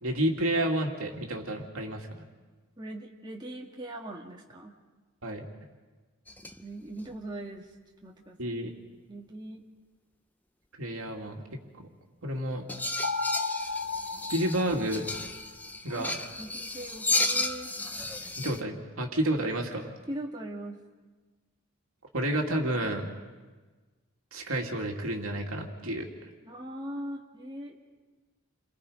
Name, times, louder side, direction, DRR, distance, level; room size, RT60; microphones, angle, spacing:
voice 1, 0.0-2.2 5.2-5.4 8.4-8.7 10.8-11.4 11.8-11.9 12.2-12.6 14.3-15.1 15.8-16.2 18.4-19.9 22.1-23.1 24.3-26.1, right 1 dB, 75° right, 1 dB, 2.6 m, -30 dB
voice 2, 2.8-4.7 6.6-7.7 8.0-8.6 9.1-9.6 15.9-16.1 16.4-17.7 20.1-20.8 26.4-27.9, right 1 dB, 20° right, -2 dB, 1.9 m, -40 dB
sound 1, 6.3-6.6 6.9-7.1 12.7-18.6, left 2 dB, 10° left, 0.6 m, -33 dB
sound 2, 13.0-15.5, left 4 dB, 50° left, 0.8 m, -34 dB
29.5 x 23.0 x 5.1 m, 1.3 s
head